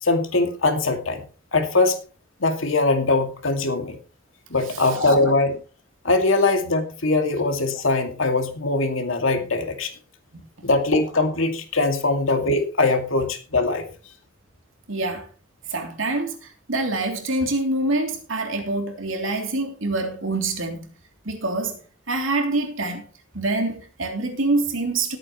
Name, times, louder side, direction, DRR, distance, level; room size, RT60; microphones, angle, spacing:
voice 1, 0.0-1.2 1.5-2.0 2.4-4.0 4.5-5.6 6.0-9.9 10.6-13.9, left 2 dB, 70° left, 2.3 m, -21 dB
voice 2, 4.6-5.0 10.3-10.4 14.9-15.3 15.7-20.9 21.2-21.8 22.1-23.1 23.3-25.2, right 2 dB, 70° right, 3.1 m, -26 dB
19.5 x 9.0 x 3.1 m
head